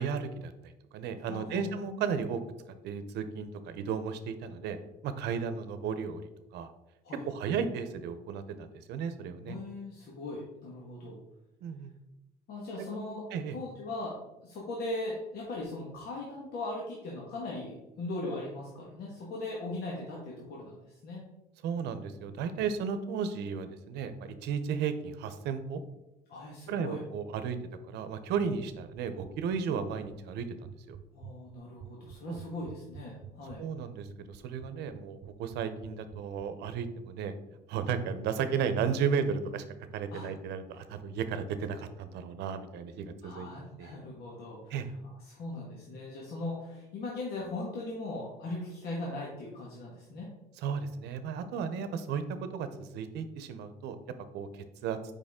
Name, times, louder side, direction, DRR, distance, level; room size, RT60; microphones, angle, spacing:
voice 1, 0.0-2.4 2.8-4.8 5.0-6.2 6.5-6.7 7.2-9.6 11.6-11.9 12.8-12.9 13.3-13.6 21.6-25.8 26.7-27.6 27.9-31.0 32.3-32.4 33.6-37.3 37.7-39.6 39.9-43.5 43.8-43.9 44.7-44.9 50.6-54.0 54.3-55.0, right 6 dB, 80° right, 10 dB, 0.7 m, -34 dB
voice 2, 1.3-1.7 7.0-7.2 9.5-11.2 12.5-13.2 13.5-14.1 14.4-21.3 26.3-27.0 31.1-33.6 40.1-40.3 43.2-44.7 45.3-50.3, left 2 dB, 70° left, -4 dB, 1.5 m, -39 dB
sound 1, 28.4-36.8, right 11 dB, 45° right, 0.4 m, -48 dB
6.5 x 5.3 x 3.6 m, 0.95 s
cardioid pair, 110°, 17 cm